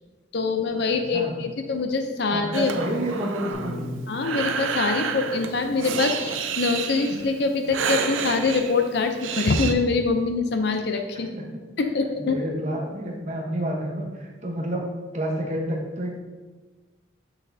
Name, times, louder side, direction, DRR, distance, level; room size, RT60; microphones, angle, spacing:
voice 1, 0.3-2.7 4.1-11.3 11.8-12.4, left 4 dB, 60° left, 6 dB, 0.5 m, -24 dB
voice 2, 0.9-1.4 2.3-4.0 11.3-11.4 12.2-16.2, equal, 35° right, -1 dB, 1.1 m, -29 dB
Breathing, 2.5-9.7, right 6 dB, 85° right, 0.5 m, -30 dB
Bass guitar, 3.5-9.8, left 2 dB, 5° left, 1.1 m, -44 dB
6.4 x 6.3 x 2.7 m, 1.3 s
head